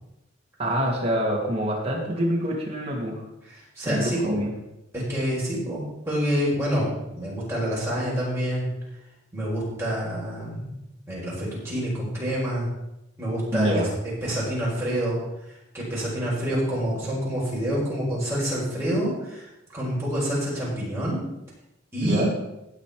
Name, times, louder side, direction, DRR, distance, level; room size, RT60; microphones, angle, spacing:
voice 1, 0.6-3.2 3.8-4.5 13.5-13.9 22.0-22.3, equal, 30° right, -2 dB, 2.8 m, -26 dB
voice 2, 3.8-4.3 4.9-6.9 7.1-8.7 9.3-10.7 11.1-12.7 13.2-13.8 14.2-15.2 15.7-21.2 21.9-22.3, equal, 15° right, -7 dB, 4.9 m, -27 dB
16.5 x 5.7 x 5.2 m, 0.90 s
head